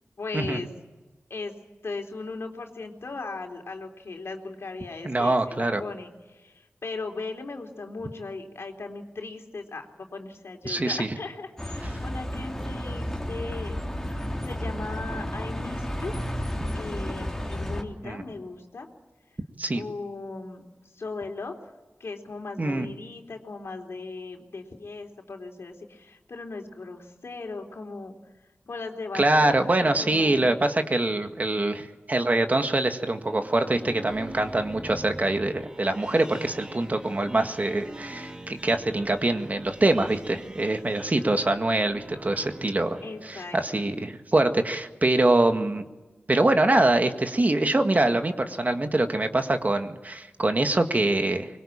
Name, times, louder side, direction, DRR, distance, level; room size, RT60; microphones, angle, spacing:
voice 1, 0.2-0.7 1.3-1.5 1.8-13.8 14.4-16.1 16.8-18.9 19.7-20.6 20.9-21.5 22.0-28.1 28.7-30.4 43.0-43.8, left 3 dB, 75° left, 3 dB, 3.6 m, -37 dB
voice 2, 5.0-5.8 10.6-11.1 18.0-18.2 19.6-19.8 22.6-22.9 29.1-43.0 43.2-45.8 46.3-51.5, right 2 dB, 35° right, 6 dB, 1.8 m, -24 dB
Bus, 11.6-17.8, equal, 10° left, 3.2 m, -32 dB
sound 1, 33.0-43.8, right 1 dB, 20° right, 2.2 m, -43 dB
24.0 x 21.5 x 8.7 m, 1.2 s
wide cardioid pair, 75°, 4 cm